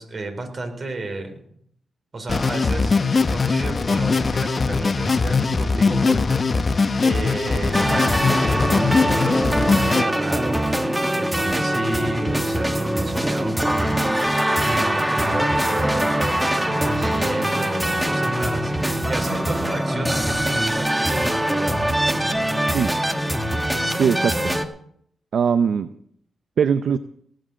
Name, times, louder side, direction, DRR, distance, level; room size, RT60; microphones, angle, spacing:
voice 1, 0.0-1.4 2.1-3.0 3.3-6.4 7.0-22.0, right 2 dB, 50° right, 5 dB, 4.3 m, -32 dB
sound 1, 2.3-10.0, left 4 dB, 45° left, 0.8 m, -21 dB
sound 2, 7.7-24.7, right 1 dB, 10° right, 1.6 m, -22 dB
voice 2, 23.9-24.5 25.3-25.9 26.6-27.0, right 7 dB, 70° right, 12 dB, 0.6 m, -20 dB
18.5 x 7.8 x 6.4 m, 0.65 s
supercardioid pair, 55°, 0 cm